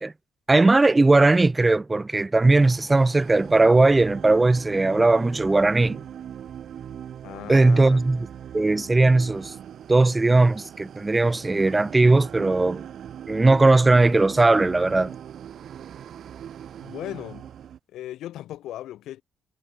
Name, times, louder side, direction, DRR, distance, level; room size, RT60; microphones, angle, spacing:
voice 1, 0.5-6.0 7.5-8.3 8.5-9.5 9.9-12.8 13.3-15.1, right 2 dB, 20° right, 0.3 m, -18 dB
sound 1, 2.6-17.8, right 9 dB, 65° right, 5.3 m, -40 dB
voice 2, 7.2-8.0 16.8-17.5 17.9-19.2, left 13 dB, 80° left, 1.6 m, -37 dB
cardioid pair, 90°, 0 cm